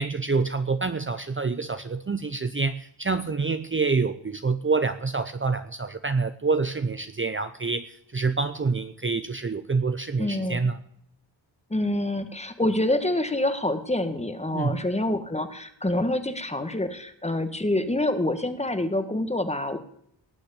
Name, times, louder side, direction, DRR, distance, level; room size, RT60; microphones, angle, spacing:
voice 1, 0.0-10.8 14.5-14.8, right 4 dB, 25° right, 11 dB, 0.7 m, -27 dB
voice 2, 10.2-10.7 11.7-19.8, left 1 dB, 15° left, 9 dB, 1.6 m, -26 dB
18.5 x 6.3 x 10.0 m, 0.72 s
wide cardioid pair, 125°, 45 cm